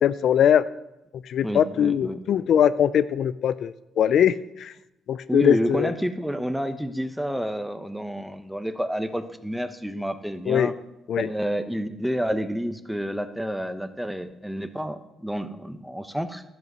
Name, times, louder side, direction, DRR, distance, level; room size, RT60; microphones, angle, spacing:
voice 1, 0.0-0.6 1.3-4.7 5.1-5.9 10.5-10.7 11.1-11.3, left 9 dB, 65° left, 15 dB, 0.4 m, -21 dB
voice 2, 1.4-2.2 5.3-10.7 11.2-16.4, equal, ahead, 9 dB, 0.9 m, -29 dB
12.0 x 8.0 x 6.2 m, 0.92 s
cardioid pair, 90°, 0 cm